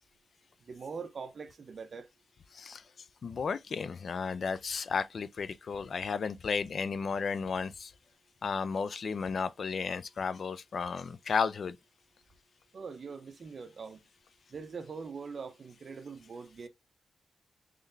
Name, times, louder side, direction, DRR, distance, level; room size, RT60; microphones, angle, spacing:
voice 1, 0.7-2.1 12.7-14.0 14.5-16.7, right 5 dB, 50° right, 0.6 m, -42 dB
voice 2, 3.2-7.9 8.4-11.8, left 5 dB, 60° left, 0.3 m, -33 dB
3.8 x 3.2 x 2.5 m
wide cardioid pair, 150°, 0 cm